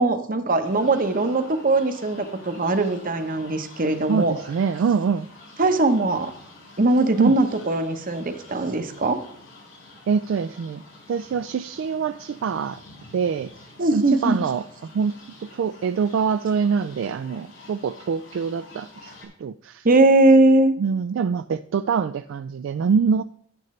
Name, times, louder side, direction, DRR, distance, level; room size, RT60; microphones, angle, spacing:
voice 1, 0.0-4.3 5.6-6.3 6.8-9.2 13.8-14.4 19.8-20.7, right 2 dB, 45° right, 9 dB, 0.9 m, -20 dB
sound 1, 0.6-19.3, left 2 dB, 90° left, 5.0 m, -47 dB
voice 2, 4.1-5.3 7.2-7.3 10.1-10.8 11.1-12.8 13.1-13.5 13.9-15.1 15.4-19.1 19.4-19.9 20.8-23.2, right 6 dB, 70° right, 11 dB, 0.3 m, -24 dB
10.5 x 9.9 x 3.2 m, 0.62 s
head